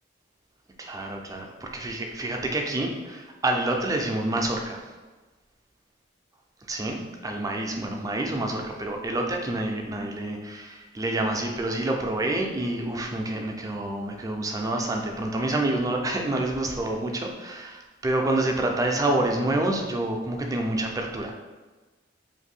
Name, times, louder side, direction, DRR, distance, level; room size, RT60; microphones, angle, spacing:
voice 1, 0.8-4.8 6.7-21.4, right 1 dB, 20° right, 2 dB, 0.4 m, -28 dB
2.6 x 2.6 x 4.2 m, 1.3 s
head